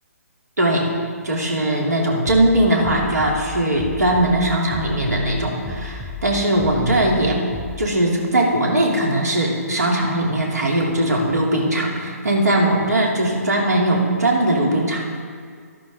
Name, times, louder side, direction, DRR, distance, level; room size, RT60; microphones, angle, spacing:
voice 1, 0.6-0.9 1.2-7.4 7.8-15.0, right 1 dB, 85° right, -1 dB, 2.7 m, -20 dB
Bass drum, 2.2-7.9, left 3 dB, 5° left, 0.6 m, -34 dB
12.0 x 11.0 x 3.7 m, 2.1 s
figure-of-eight pair, 140°, 9 cm